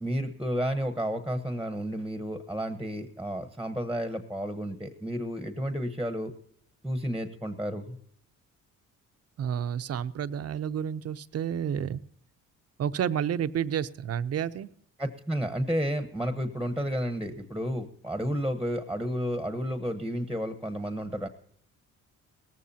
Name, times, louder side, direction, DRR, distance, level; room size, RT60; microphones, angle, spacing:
voice 1, 0.0-6.3 6.8-8.0 15.0-21.3, equal, 5° right, 9 dB, 1.1 m, -31 dB
voice 2, 9.4-12.0 12.8-14.7, right 8 dB, 55° right, 13 dB, 0.7 m, -30 dB
18.5 x 15.0 x 2.8 m, 0.65 s
cardioid pair, 90°, 30 cm